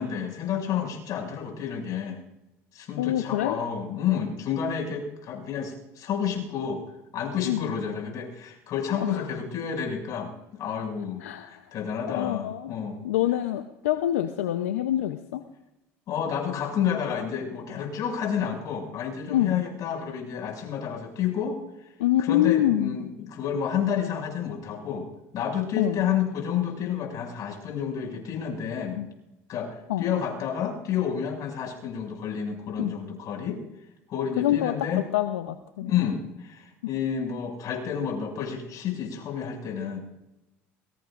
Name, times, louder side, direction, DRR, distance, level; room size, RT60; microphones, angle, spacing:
voice 1, 0.0-2.2 2.7-6.8 7.1-13.0 16.1-21.6 22.2-25.1 25.3-29.0 29.5-33.6 34.1-35.0 35.8-40.0, left 8 dB, 55° left, 1 dB, 6.3 m, -30 dB
voice 2, 3.0-3.6 7.4-7.7 9.0-9.3 11.2-11.6 12.1-12.7 13.0-15.4 19.3-19.6 22.0-23.0 25.8-26.0 29.0-29.1 29.9-30.0 32.8-32.9 34.4-34.9 35.1-35.9 36.8-36.9, left 12 dB, 85° left, 9 dB, 0.7 m, -26 dB
22.5 x 22.0 x 2.5 m, 0.92 s
hypercardioid pair, 75°, 7 cm